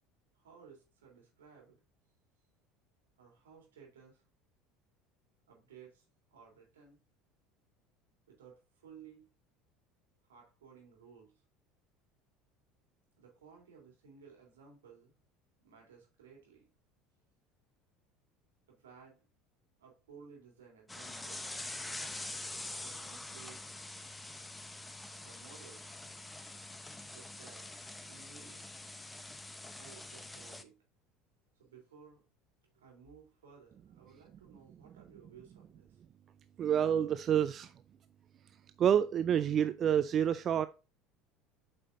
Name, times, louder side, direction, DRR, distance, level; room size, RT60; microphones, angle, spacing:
voice 1, 0.3-1.8 3.2-4.2 5.5-7.0 8.3-9.3 10.2-11.3 13.2-15.1 15.6-16.7 18.7-19.2 19.8-21.5 22.8-23.6 25.2-25.9 27.0-27.7 28.1-28.7 29.7-30.8 31.5-32.3 32.6-36.0, right 6 dB, 80° right, 3.4 m, -57 dB
sound 1, 20.9-30.6, left 2 dB, 10° left, 0.9 m, -45 dB
voice 2, 36.6-37.7 38.8-40.7, right 9 dB, 45° right, 0.4 m, -28 dB
8.3 x 5.5 x 2.6 m
hypercardioid pair, 70°, 0 cm